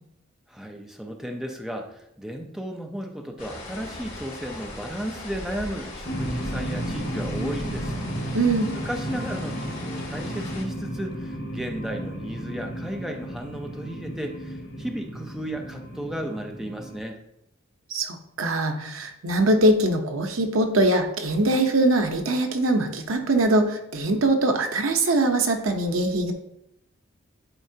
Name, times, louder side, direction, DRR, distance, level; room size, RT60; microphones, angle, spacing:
voice 1, 0.5-8.0 8.7-17.2, equal, ahead, 2 dB, 0.6 m, -34 dB
sound 1, 3.4-10.6, left 1 dB, 40° left, 3.0 m, -38 dB
sound 2, 6.0-17.0, right 1 dB, 80° left, 1.6 m, -33 dB
voice 2, 8.3-8.7 17.9-26.3, right 2 dB, 80° right, 5 dB, 0.9 m, -22 dB
11.0 x 4.7 x 2.8 m, 0.80 s
head